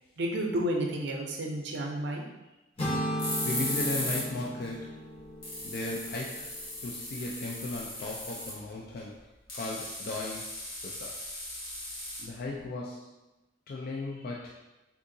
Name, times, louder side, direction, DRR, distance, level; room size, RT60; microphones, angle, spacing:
voice 1, 0.2-2.2, right 1 dB, 55° right, 0 dB, 0.5 m, -31 dB
sound 1, 2.8-6.8, equal, 30° left, 0.7 m, -36 dB
sound 2, 3.2-4.3 4.6-4.7 5.2-5.3 5.4-8.7 9.5-12.6, left 1 dB, 70° left, 1.4 m, -37 dB
voice 2, 3.4-5.1 5.6-11.2 12.2-13.2 13.7-14.6, left 2 dB, 50° left, -2 dB, 0.3 m, -37 dB
3.6 x 2.8 x 2.6 m, 1.0 s
head